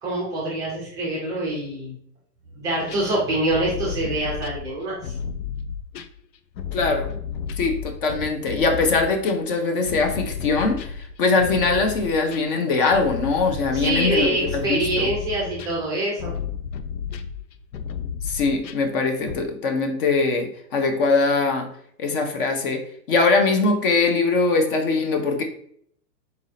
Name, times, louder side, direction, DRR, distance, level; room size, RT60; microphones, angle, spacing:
voice 1, 0.0-2.0 2.5-5.1 13.7-16.3, right 1 dB, 10° right, -5 dB, 0.5 m, -25 dB
sound 1, 2.9-6.2 6.5-19.4, left 7 dB, 85° left, 0.6 m, -33 dB
voice 2, 6.7-7.1 7.6-15.1 18.2-21.7 22.0-25.4, left 3 dB, 35° left, 5 dB, 0.6 m, -22 dB
4.1 x 2.7 x 4.0 m, 0.65 s
hypercardioid pair, 140°, 50 cm